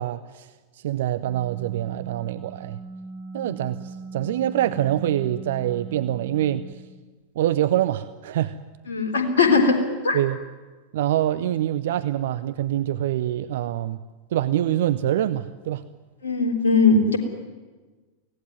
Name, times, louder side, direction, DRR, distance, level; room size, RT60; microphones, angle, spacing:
voice 1, 0.0-2.8 3.3-6.8 7.4-8.6 10.1-10.4 10.9-14.0 14.3-15.9, right 12 dB, 55° right, 13 dB, 0.7 m, -25 dB
sound 1, 1.3-6.7, right 4 dB, 25° right, 2.6 m, -39 dB
voice 2, 8.9-9.8 10.0-10.2 16.2-17.2, left 4 dB, 65° left, 4 dB, 3.7 m, -19 dB
24.0 x 17.5 x 9.5 m, 1.3 s
figure-of-eight pair, 90°, 0 cm